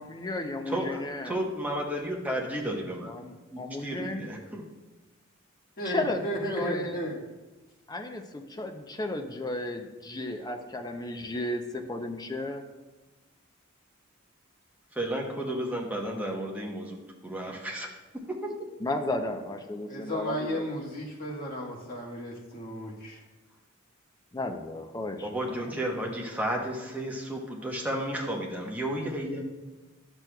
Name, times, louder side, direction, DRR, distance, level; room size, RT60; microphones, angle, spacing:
voice 1, 0.0-1.4 3.1-4.3 5.8-7.0 7.9-12.6 18.8-20.8 24.3-25.6, left 2 dB, 20° left, 4 dB, 0.5 m, -34 dB
voice 2, 0.7-3.1 3.5-4.6 15.0-17.0 17.2-17.9 18.4-18.5 25.2-29.4, right 1 dB, 10° right, -2 dB, 0.9 m, -32 dB
voice 3, 5.8-7.2 19.9-23.1, equal, 45° left, -4 dB, 1.5 m, -34 dB
10.5 x 6.1 x 2.3 m, 1.1 s
head